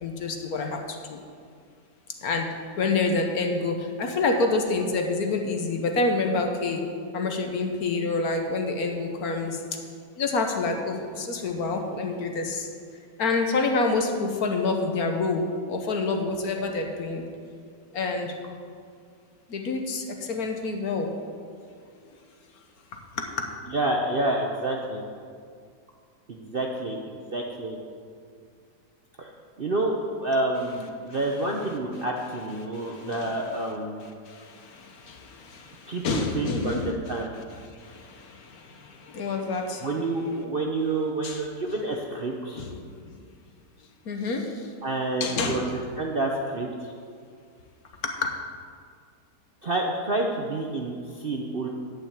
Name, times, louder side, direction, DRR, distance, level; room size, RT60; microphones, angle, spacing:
voice 1, 0.0-1.2 2.2-2.5 2.8-6.8 7.1-9.6 10.2-12.7 13.2-17.2 17.9-18.3 19.5-21.1 23.1-23.5 32.7-33.4 34.3-37.2 37.8-39.9 41.2-41.4 42.6-42.7 43.0-43.2 44.0-44.7 45.2-45.8 48.0-48.4, left 3 dB, 60° left, 3 dB, 1.4 m, -28 dB
voice 2, 23.7-25.0 26.3-27.8 29.2-29.3 29.6-34.0 35.9-37.3 39.8-42.6 44.8-46.9 49.6-51.7, right 2 dB, 45° right, 0 dB, 0.7 m, -28 dB
10.5 x 5.7 x 8.5 m, 2.2 s
omnidirectional pair, 1.9 m